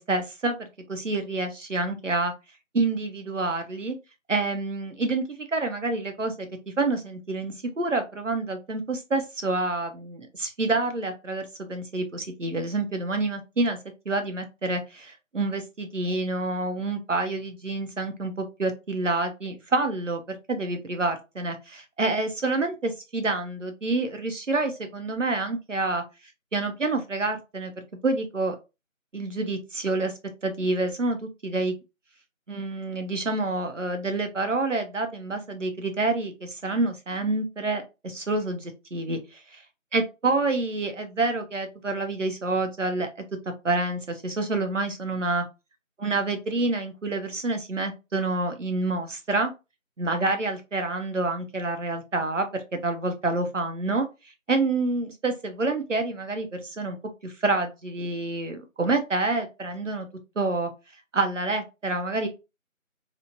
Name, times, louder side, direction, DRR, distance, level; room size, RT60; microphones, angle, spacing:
voice 1, 0.0-2.3 2.7-4.0 4.3-6.5 6.8-13.8 14.1-26.0 26.5-28.6 29.1-30.1 30.4-31.8 32.5-39.6 39.9-43.2 43.6-45.4 46.0-49.5 50.0-54.1 54.5-57.0 57.2-60.1 60.4-60.7 61.1-62.3, right 2 dB, 65° right, 6 dB, 0.6 m, -28 dB
2.9 x 2.0 x 2.4 m, 0.27 s
figure-of-eight pair, 180°, 41 cm